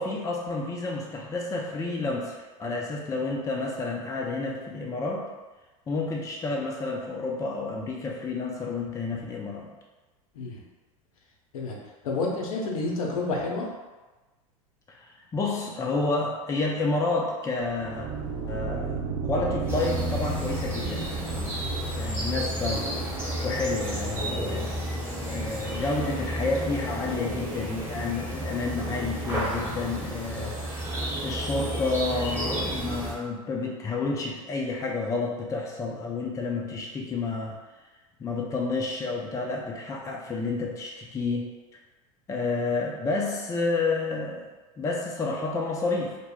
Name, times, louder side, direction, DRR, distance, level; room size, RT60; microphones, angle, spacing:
voice 1, 0.0-5.3 5.9-9.7 14.9-18.1 18.5-19.0 19.2-21.5 22.0-23.0 23.4-24.7 25.3-30.6 31.2-37.6 38.2-41.5 42.3-44.5 44.8-46.2, left 3 dB, 15° left, -1 dB, 0.4 m, -30 dB
voice 2, 12.0-13.7, left 3 dB, 75° left, -1 dB, 0.6 m, -29 dB
sound 1, 17.6-24.9, right 5 dB, 60° right, 0.6 m, -35 dB
sound 2, 19.7-33.1, right 1 dB, 10° right, 1.0 m, -31 dB
2.1 x 2.1 x 3.5 m, 1.2 s
hypercardioid pair, 85°, 19 cm